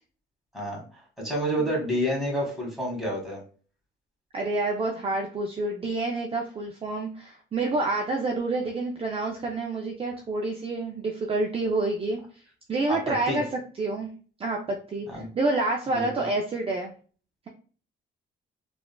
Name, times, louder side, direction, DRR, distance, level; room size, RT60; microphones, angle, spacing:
voice 1, 1.2-3.4 12.9-13.0 13.3-13.4 15.1-15.3 15.9-16.3, equal, ahead, -1 dB, 1.5 m, -29 dB
voice 2, 4.3-14.1 14.4-16.9, right 2 dB, 30° right, 1 dB, 0.5 m, -28 dB
3.7 x 2.4 x 2.2 m, 0.41 s
cardioid pair, 90°, 20 cm